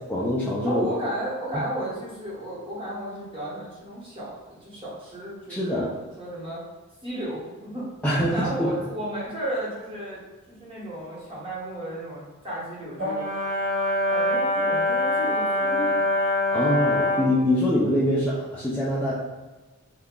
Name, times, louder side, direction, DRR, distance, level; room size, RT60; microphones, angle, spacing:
voice 1, 0.0-0.9 1.5-1.6 5.5-5.9 8.0-8.7 16.5-19.1, left 1 dB, 5° left, -9 dB, 0.4 m, -24 dB
voice 2, 0.6-6.6 7.0-7.9 8.3-13.3 14.1-16.0, right 1 dB, 25° right, -8 dB, 1.2 m, -34 dB
Brass instrument, 13.0-17.4, left 1 dB, 40° right, 0.8 m, -24 dB
2.9 x 2.2 x 3.6 m, 1.2 s
head